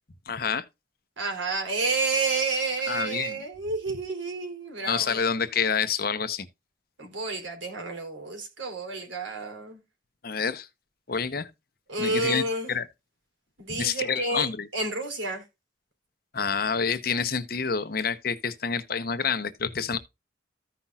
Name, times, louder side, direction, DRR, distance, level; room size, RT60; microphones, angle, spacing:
voice 1, 0.3-0.6 2.9-3.4 4.8-6.5 10.2-10.7 11.1-11.5 12.0-12.4 12.7-12.8 13.7-14.7 16.3-20.0, left 6 dB, 50° left, 0.8 m, -28 dB
voice 2, 1.2-5.2 7.0-9.8 11.9-12.7 13.6-14.5 14.7-15.4, right 3 dB, 80° right, 3.6 m, -30 dB
14.5 x 5.7 x 2.4 m
head